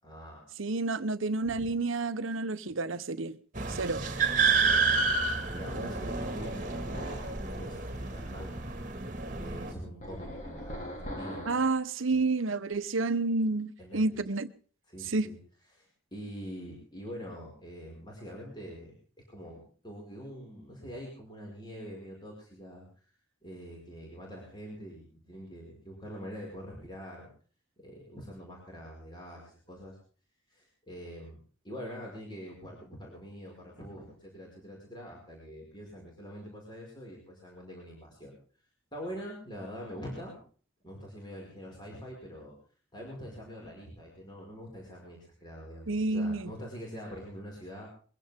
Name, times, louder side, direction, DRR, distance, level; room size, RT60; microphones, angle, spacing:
voice 1, 0.0-0.5 1.4-1.7 3.9-4.1 4.5-5.0 5.5-8.7 9.3-11.6 12.1-12.2 13.8-14.2 14.9-15.4 15.7-18.9 19.3-22.9 23.4-27.3 27.8-30.0 30.5-31.4 31.6-38.4 38.9-40.4 40.8-42.6 42.9-47.9, equal, 20° left, 5.4 m, -44 dB
voice 2, 0.6-3.4 3.7-4.0 11.5-14.5 15.1-15.3 45.9-46.5, right 3 dB, 80° right, 0.9 m, -30 dB
sound 1, 3.6-9.7, right 4 dB, 40° right, 2.0 m, -30 dB
sound 2, 6.4-7.4 10.0-11.8, equal, 35° left, 3.2 m, -41 dB
22.5 x 15.5 x 3.6 m
head